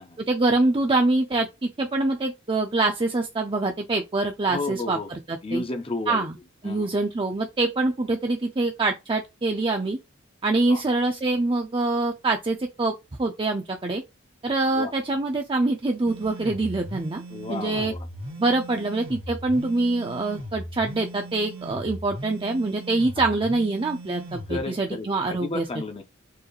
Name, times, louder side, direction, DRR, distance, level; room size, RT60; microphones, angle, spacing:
voice 1, 0.2-5.6 6.1-6.4 6.6-10.0 10.4-12.9 13.2-14.0 14.4-17.2 17.5-17.9 18.4-25.6, right 2 dB, 25° right, 0.5 m, -25 dB
voice 2, 4.5-5.1 5.4-6.3 6.6-6.9 10.7-10.8 14.7-14.9 17.3-18.1 18.7-18.8 23.2-23.3 24.5-26.0, left 2 dB, 25° left, 0.6 m, -33 dB
sound 1, 16.1-24.6, equal, 85° right, 2.1 m, -38 dB
4.7 x 2.5 x 3.0 m
head